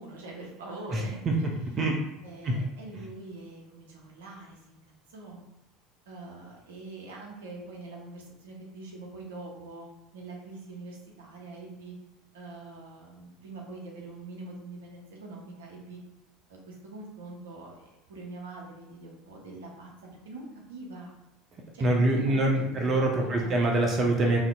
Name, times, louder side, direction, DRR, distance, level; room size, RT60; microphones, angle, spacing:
voice 1, 0.0-1.4 2.2-4.8 5.1-5.4 6.1-9.9 10.1-11.9 12.3-16.0 16.5-19.9 20.2-21.1 21.7-22.8 23.2-23.6, right 2 dB, 70° right, -1 dB, 0.7 m, -43 dB
voice 2, 0.9-1.3 1.8-2.0 2.4-2.6 21.8-24.4, right 2 dB, 35° right, 0 dB, 0.5 m, -25 dB
3.6 x 2.6 x 2.2 m, 0.93 s
figure-of-eight pair, 70°, 0 cm